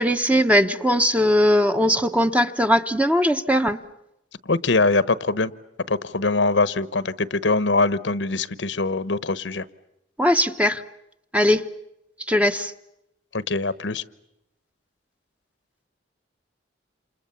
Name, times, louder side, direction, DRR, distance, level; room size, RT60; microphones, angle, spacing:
voice 1, 0.0-3.8 10.2-10.8 11.3-11.7 12.3-12.7, equal, 5° right, 8 dB, 1.0 m, -19 dB
voice 2, 4.5-5.5 5.9-9.6 13.3-14.0, left 3 dB, 75° left, 16 dB, 1.1 m, -23 dB
28.5 x 28.5 x 7.0 m, 0.85 s
head